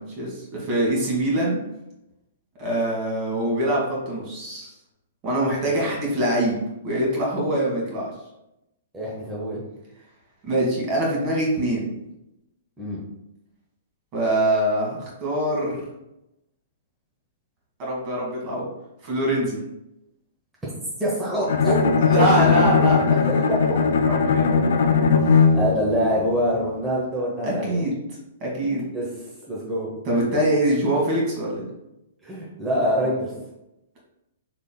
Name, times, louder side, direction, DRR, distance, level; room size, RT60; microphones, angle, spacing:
voice 1, 0.0-1.6 2.6-4.7 5.2-6.6 6.8-8.1 10.4-11.9 14.1-15.8 17.8-18.6 19.0-19.6 22.1-23.3 24.0-24.6 27.4-27.9 28.4-28.9 30.0-31.7, right 1 dB, 40° right, -3 dB, 1.5 m, -24 dB
voice 2, 8.9-9.6 12.8-13.0 21.0-21.8 22.2-22.3 23.5-23.6 25.5-27.8 28.9-29.1 29.5-29.9 32.2-33.3, equal, 10° right, -6 dB, 0.9 m, -25 dB
Bowed string instrument, 21.5-25.9, left 5 dB, 70° left, 0.4 m, -19 dB
4.0 x 3.3 x 2.2 m, 0.88 s
hypercardioid pair, 120°, 0 cm